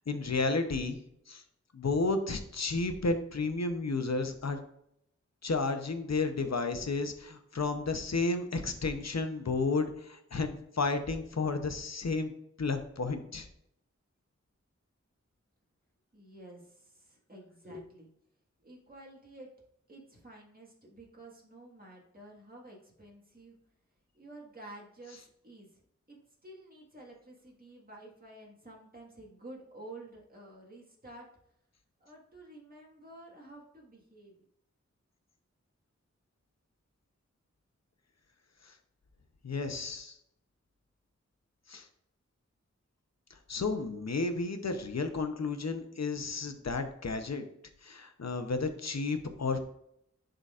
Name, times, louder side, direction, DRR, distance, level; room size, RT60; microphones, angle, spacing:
voice 1, 0.1-1.0 1.3-1.4 1.7-4.6 5.4-12.3 12.6-13.5 38.7-38.8 39.4-40.2 41.7-41.9 43.5-47.4 47.8-49.6, left 3 dB, 65° left, 8 dB, 0.8 m, -32 dB
voice 2, 16.1-18.1 18.6-19.5 19.9-23.6 24.1-25.8 26.1-26.2 26.4-31.3 32.0-34.4, right 1 dB, 30° right, -3 dB, 1.7 m, -51 dB
10.5 x 3.9 x 2.5 m, 0.75 s
wide cardioid pair, 50°, 29 cm